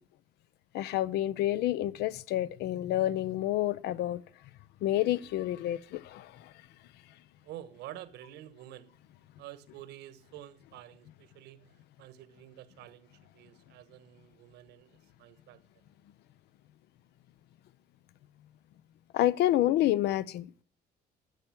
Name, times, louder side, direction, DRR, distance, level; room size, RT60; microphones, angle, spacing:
voice 1, 0.7-4.2 4.8-6.5 19.1-20.5, left 13 dB, 80° left, 0.7 m, -29 dB
voice 2, 7.4-8.9 9.4-13.1 13.3-15.6, right 12 dB, 85° right, 1.3 m, -49 dB
11.5 x 8.1 x 7.3 m
cardioid pair, 110°, 17 cm